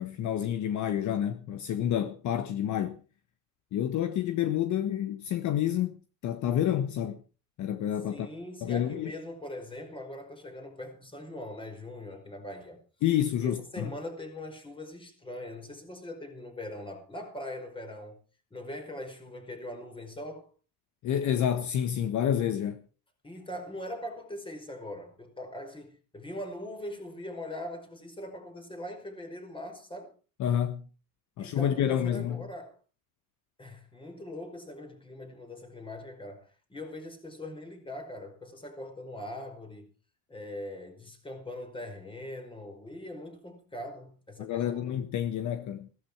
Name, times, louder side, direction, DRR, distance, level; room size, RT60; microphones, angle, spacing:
voice 1, 0.0-3.0 3.7-6.0 6.2-7.2 7.6-8.3 8.6-9.1 13.0-13.9 21.0-22.8 30.4-30.9 31.4-32.4 44.4-45.9, left 10 dB, 50° left, 1.4 m, -29 dB
voice 2, 8.1-12.8 13.4-18.2 18.5-20.5 23.2-30.1 31.4-32.8 33.6-39.9 40.3-45.0, left 1 dB, 15° left, 5.0 m, -41 dB
16.5 x 13.0 x 4.8 m
cardioid pair, 125°, 37 cm